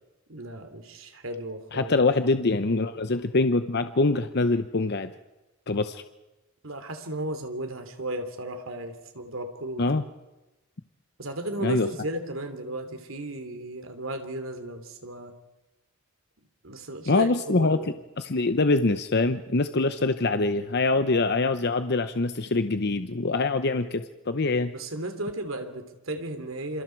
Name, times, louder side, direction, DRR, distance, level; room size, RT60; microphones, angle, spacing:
voice 1, 0.3-1.9 6.6-10.0 11.2-15.3 16.6-18.0 24.7-26.8, right 1 dB, 75° right, 7 dB, 3.1 m, -35 dB
voice 2, 1.7-5.1 5.7-6.0 9.8-10.0 11.6-11.9 17.1-17.8 18.2-24.7, left 3 dB, 55° left, 9 dB, 0.9 m, -24 dB
27.5 x 27.0 x 4.7 m, 1.0 s
head